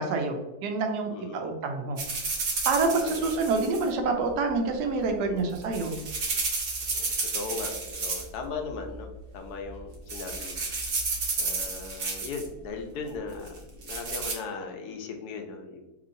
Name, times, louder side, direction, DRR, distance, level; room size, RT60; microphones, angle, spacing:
voice 1, 0.0-2.0 2.6-6.0, right 3 dB, 85° right, 4 dB, 1.2 m, -27 dB
voice 2, 1.1-1.5 2.9-3.3 5.3-5.6 6.8-7.1 7.3-9.1 9.3-10.6 11.4-15.9, left 4 dB, 80° left, 3 dB, 1.1 m, -38 dB
sound 1, 2.0-3.9 5.4-8.4 8.7-9.1 9.7-9.8 10.1-12.5 13.5-14.3, right 3 dB, 60° right, 0.6 m, -32 dB
3.0 x 2.8 x 2.5 m, 1.0 s
omnidirectional pair, 1.7 m